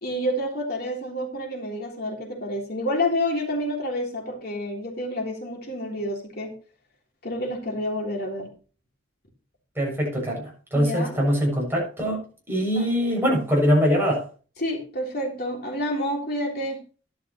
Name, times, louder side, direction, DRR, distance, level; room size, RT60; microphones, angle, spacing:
voice 1, 0.0-6.5 7.2-8.5 10.7-11.2 12.8-12.9 14.6-16.8, left 1 dB, 55° left, 3.4 m, -29 dB
voice 2, 9.8-14.2, equal, 10° right, 7.0 m, -23 dB
12.0 x 11.5 x 3.0 m
head